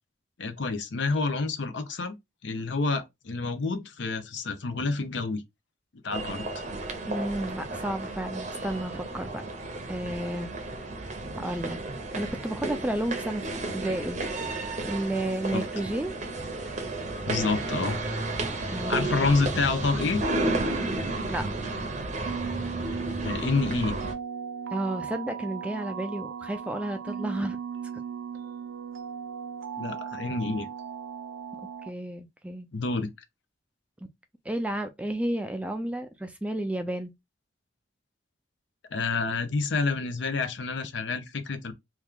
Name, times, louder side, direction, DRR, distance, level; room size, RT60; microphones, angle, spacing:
voice 1, 0.4-2.2 2.4-5.4 6.0-6.5 15.5-15.6 17.3-18.0 18.9-20.2 23.2-24.0 29.8-30.7 32.7-33.1 38.9-41.7, left 3 dB, 65° left, 0.6 m, -28 dB
sound 1, 6.1-24.1, right 2 dB, 40° right, 0.7 m, -32 dB
voice 2, 7.1-9.4 9.9-10.5 11.3-11.8 12.1-13.5 13.7-14.2 14.8-16.2 18.7-19.1 21.3-21.5 24.7-27.6 31.8-32.7 34.5-37.1, right 1 dB, 5° right, 0.3 m, -31 dB
sound 2, 22.3-31.9, right 7 dB, 85° right, 0.5 m, -37 dB
2.9 x 2.4 x 3.5 m
head